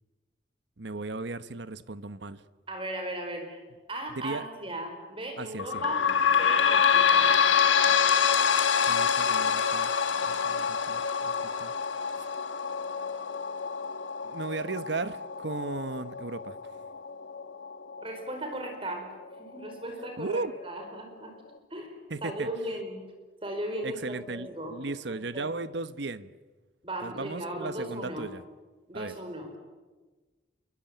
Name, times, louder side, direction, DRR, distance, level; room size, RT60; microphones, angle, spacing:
voice 1, 0.8-2.4 4.2-4.5 5.4-5.8 8.9-9.9 10.2-11.3 11.6-11.7 12.2-12.3 14.2-16.6 20.2-20.5 22.1-22.5 23.8-26.3 27.0-28.4 28.9-29.1, right 3 dB, 65° right, 13 dB, 1.0 m, -36 dB
voice 2, 2.7-3.6 3.9-6.0 6.4-7.3 18.0-19.1 19.4-21.3 21.7-23.0 23.4-24.8 25.1-25.4 26.8-28.3 28.9-29.5, right 1 dB, 30° right, 4 dB, 5.0 m, -37 dB
sound 1, 5.6-18.8 19.3-19.4 19.7-19.8 20.6-20.7, left 7 dB, 80° left, 2.0 m, -26 dB
28.0 x 23.0 x 9.2 m, 1.3 s
head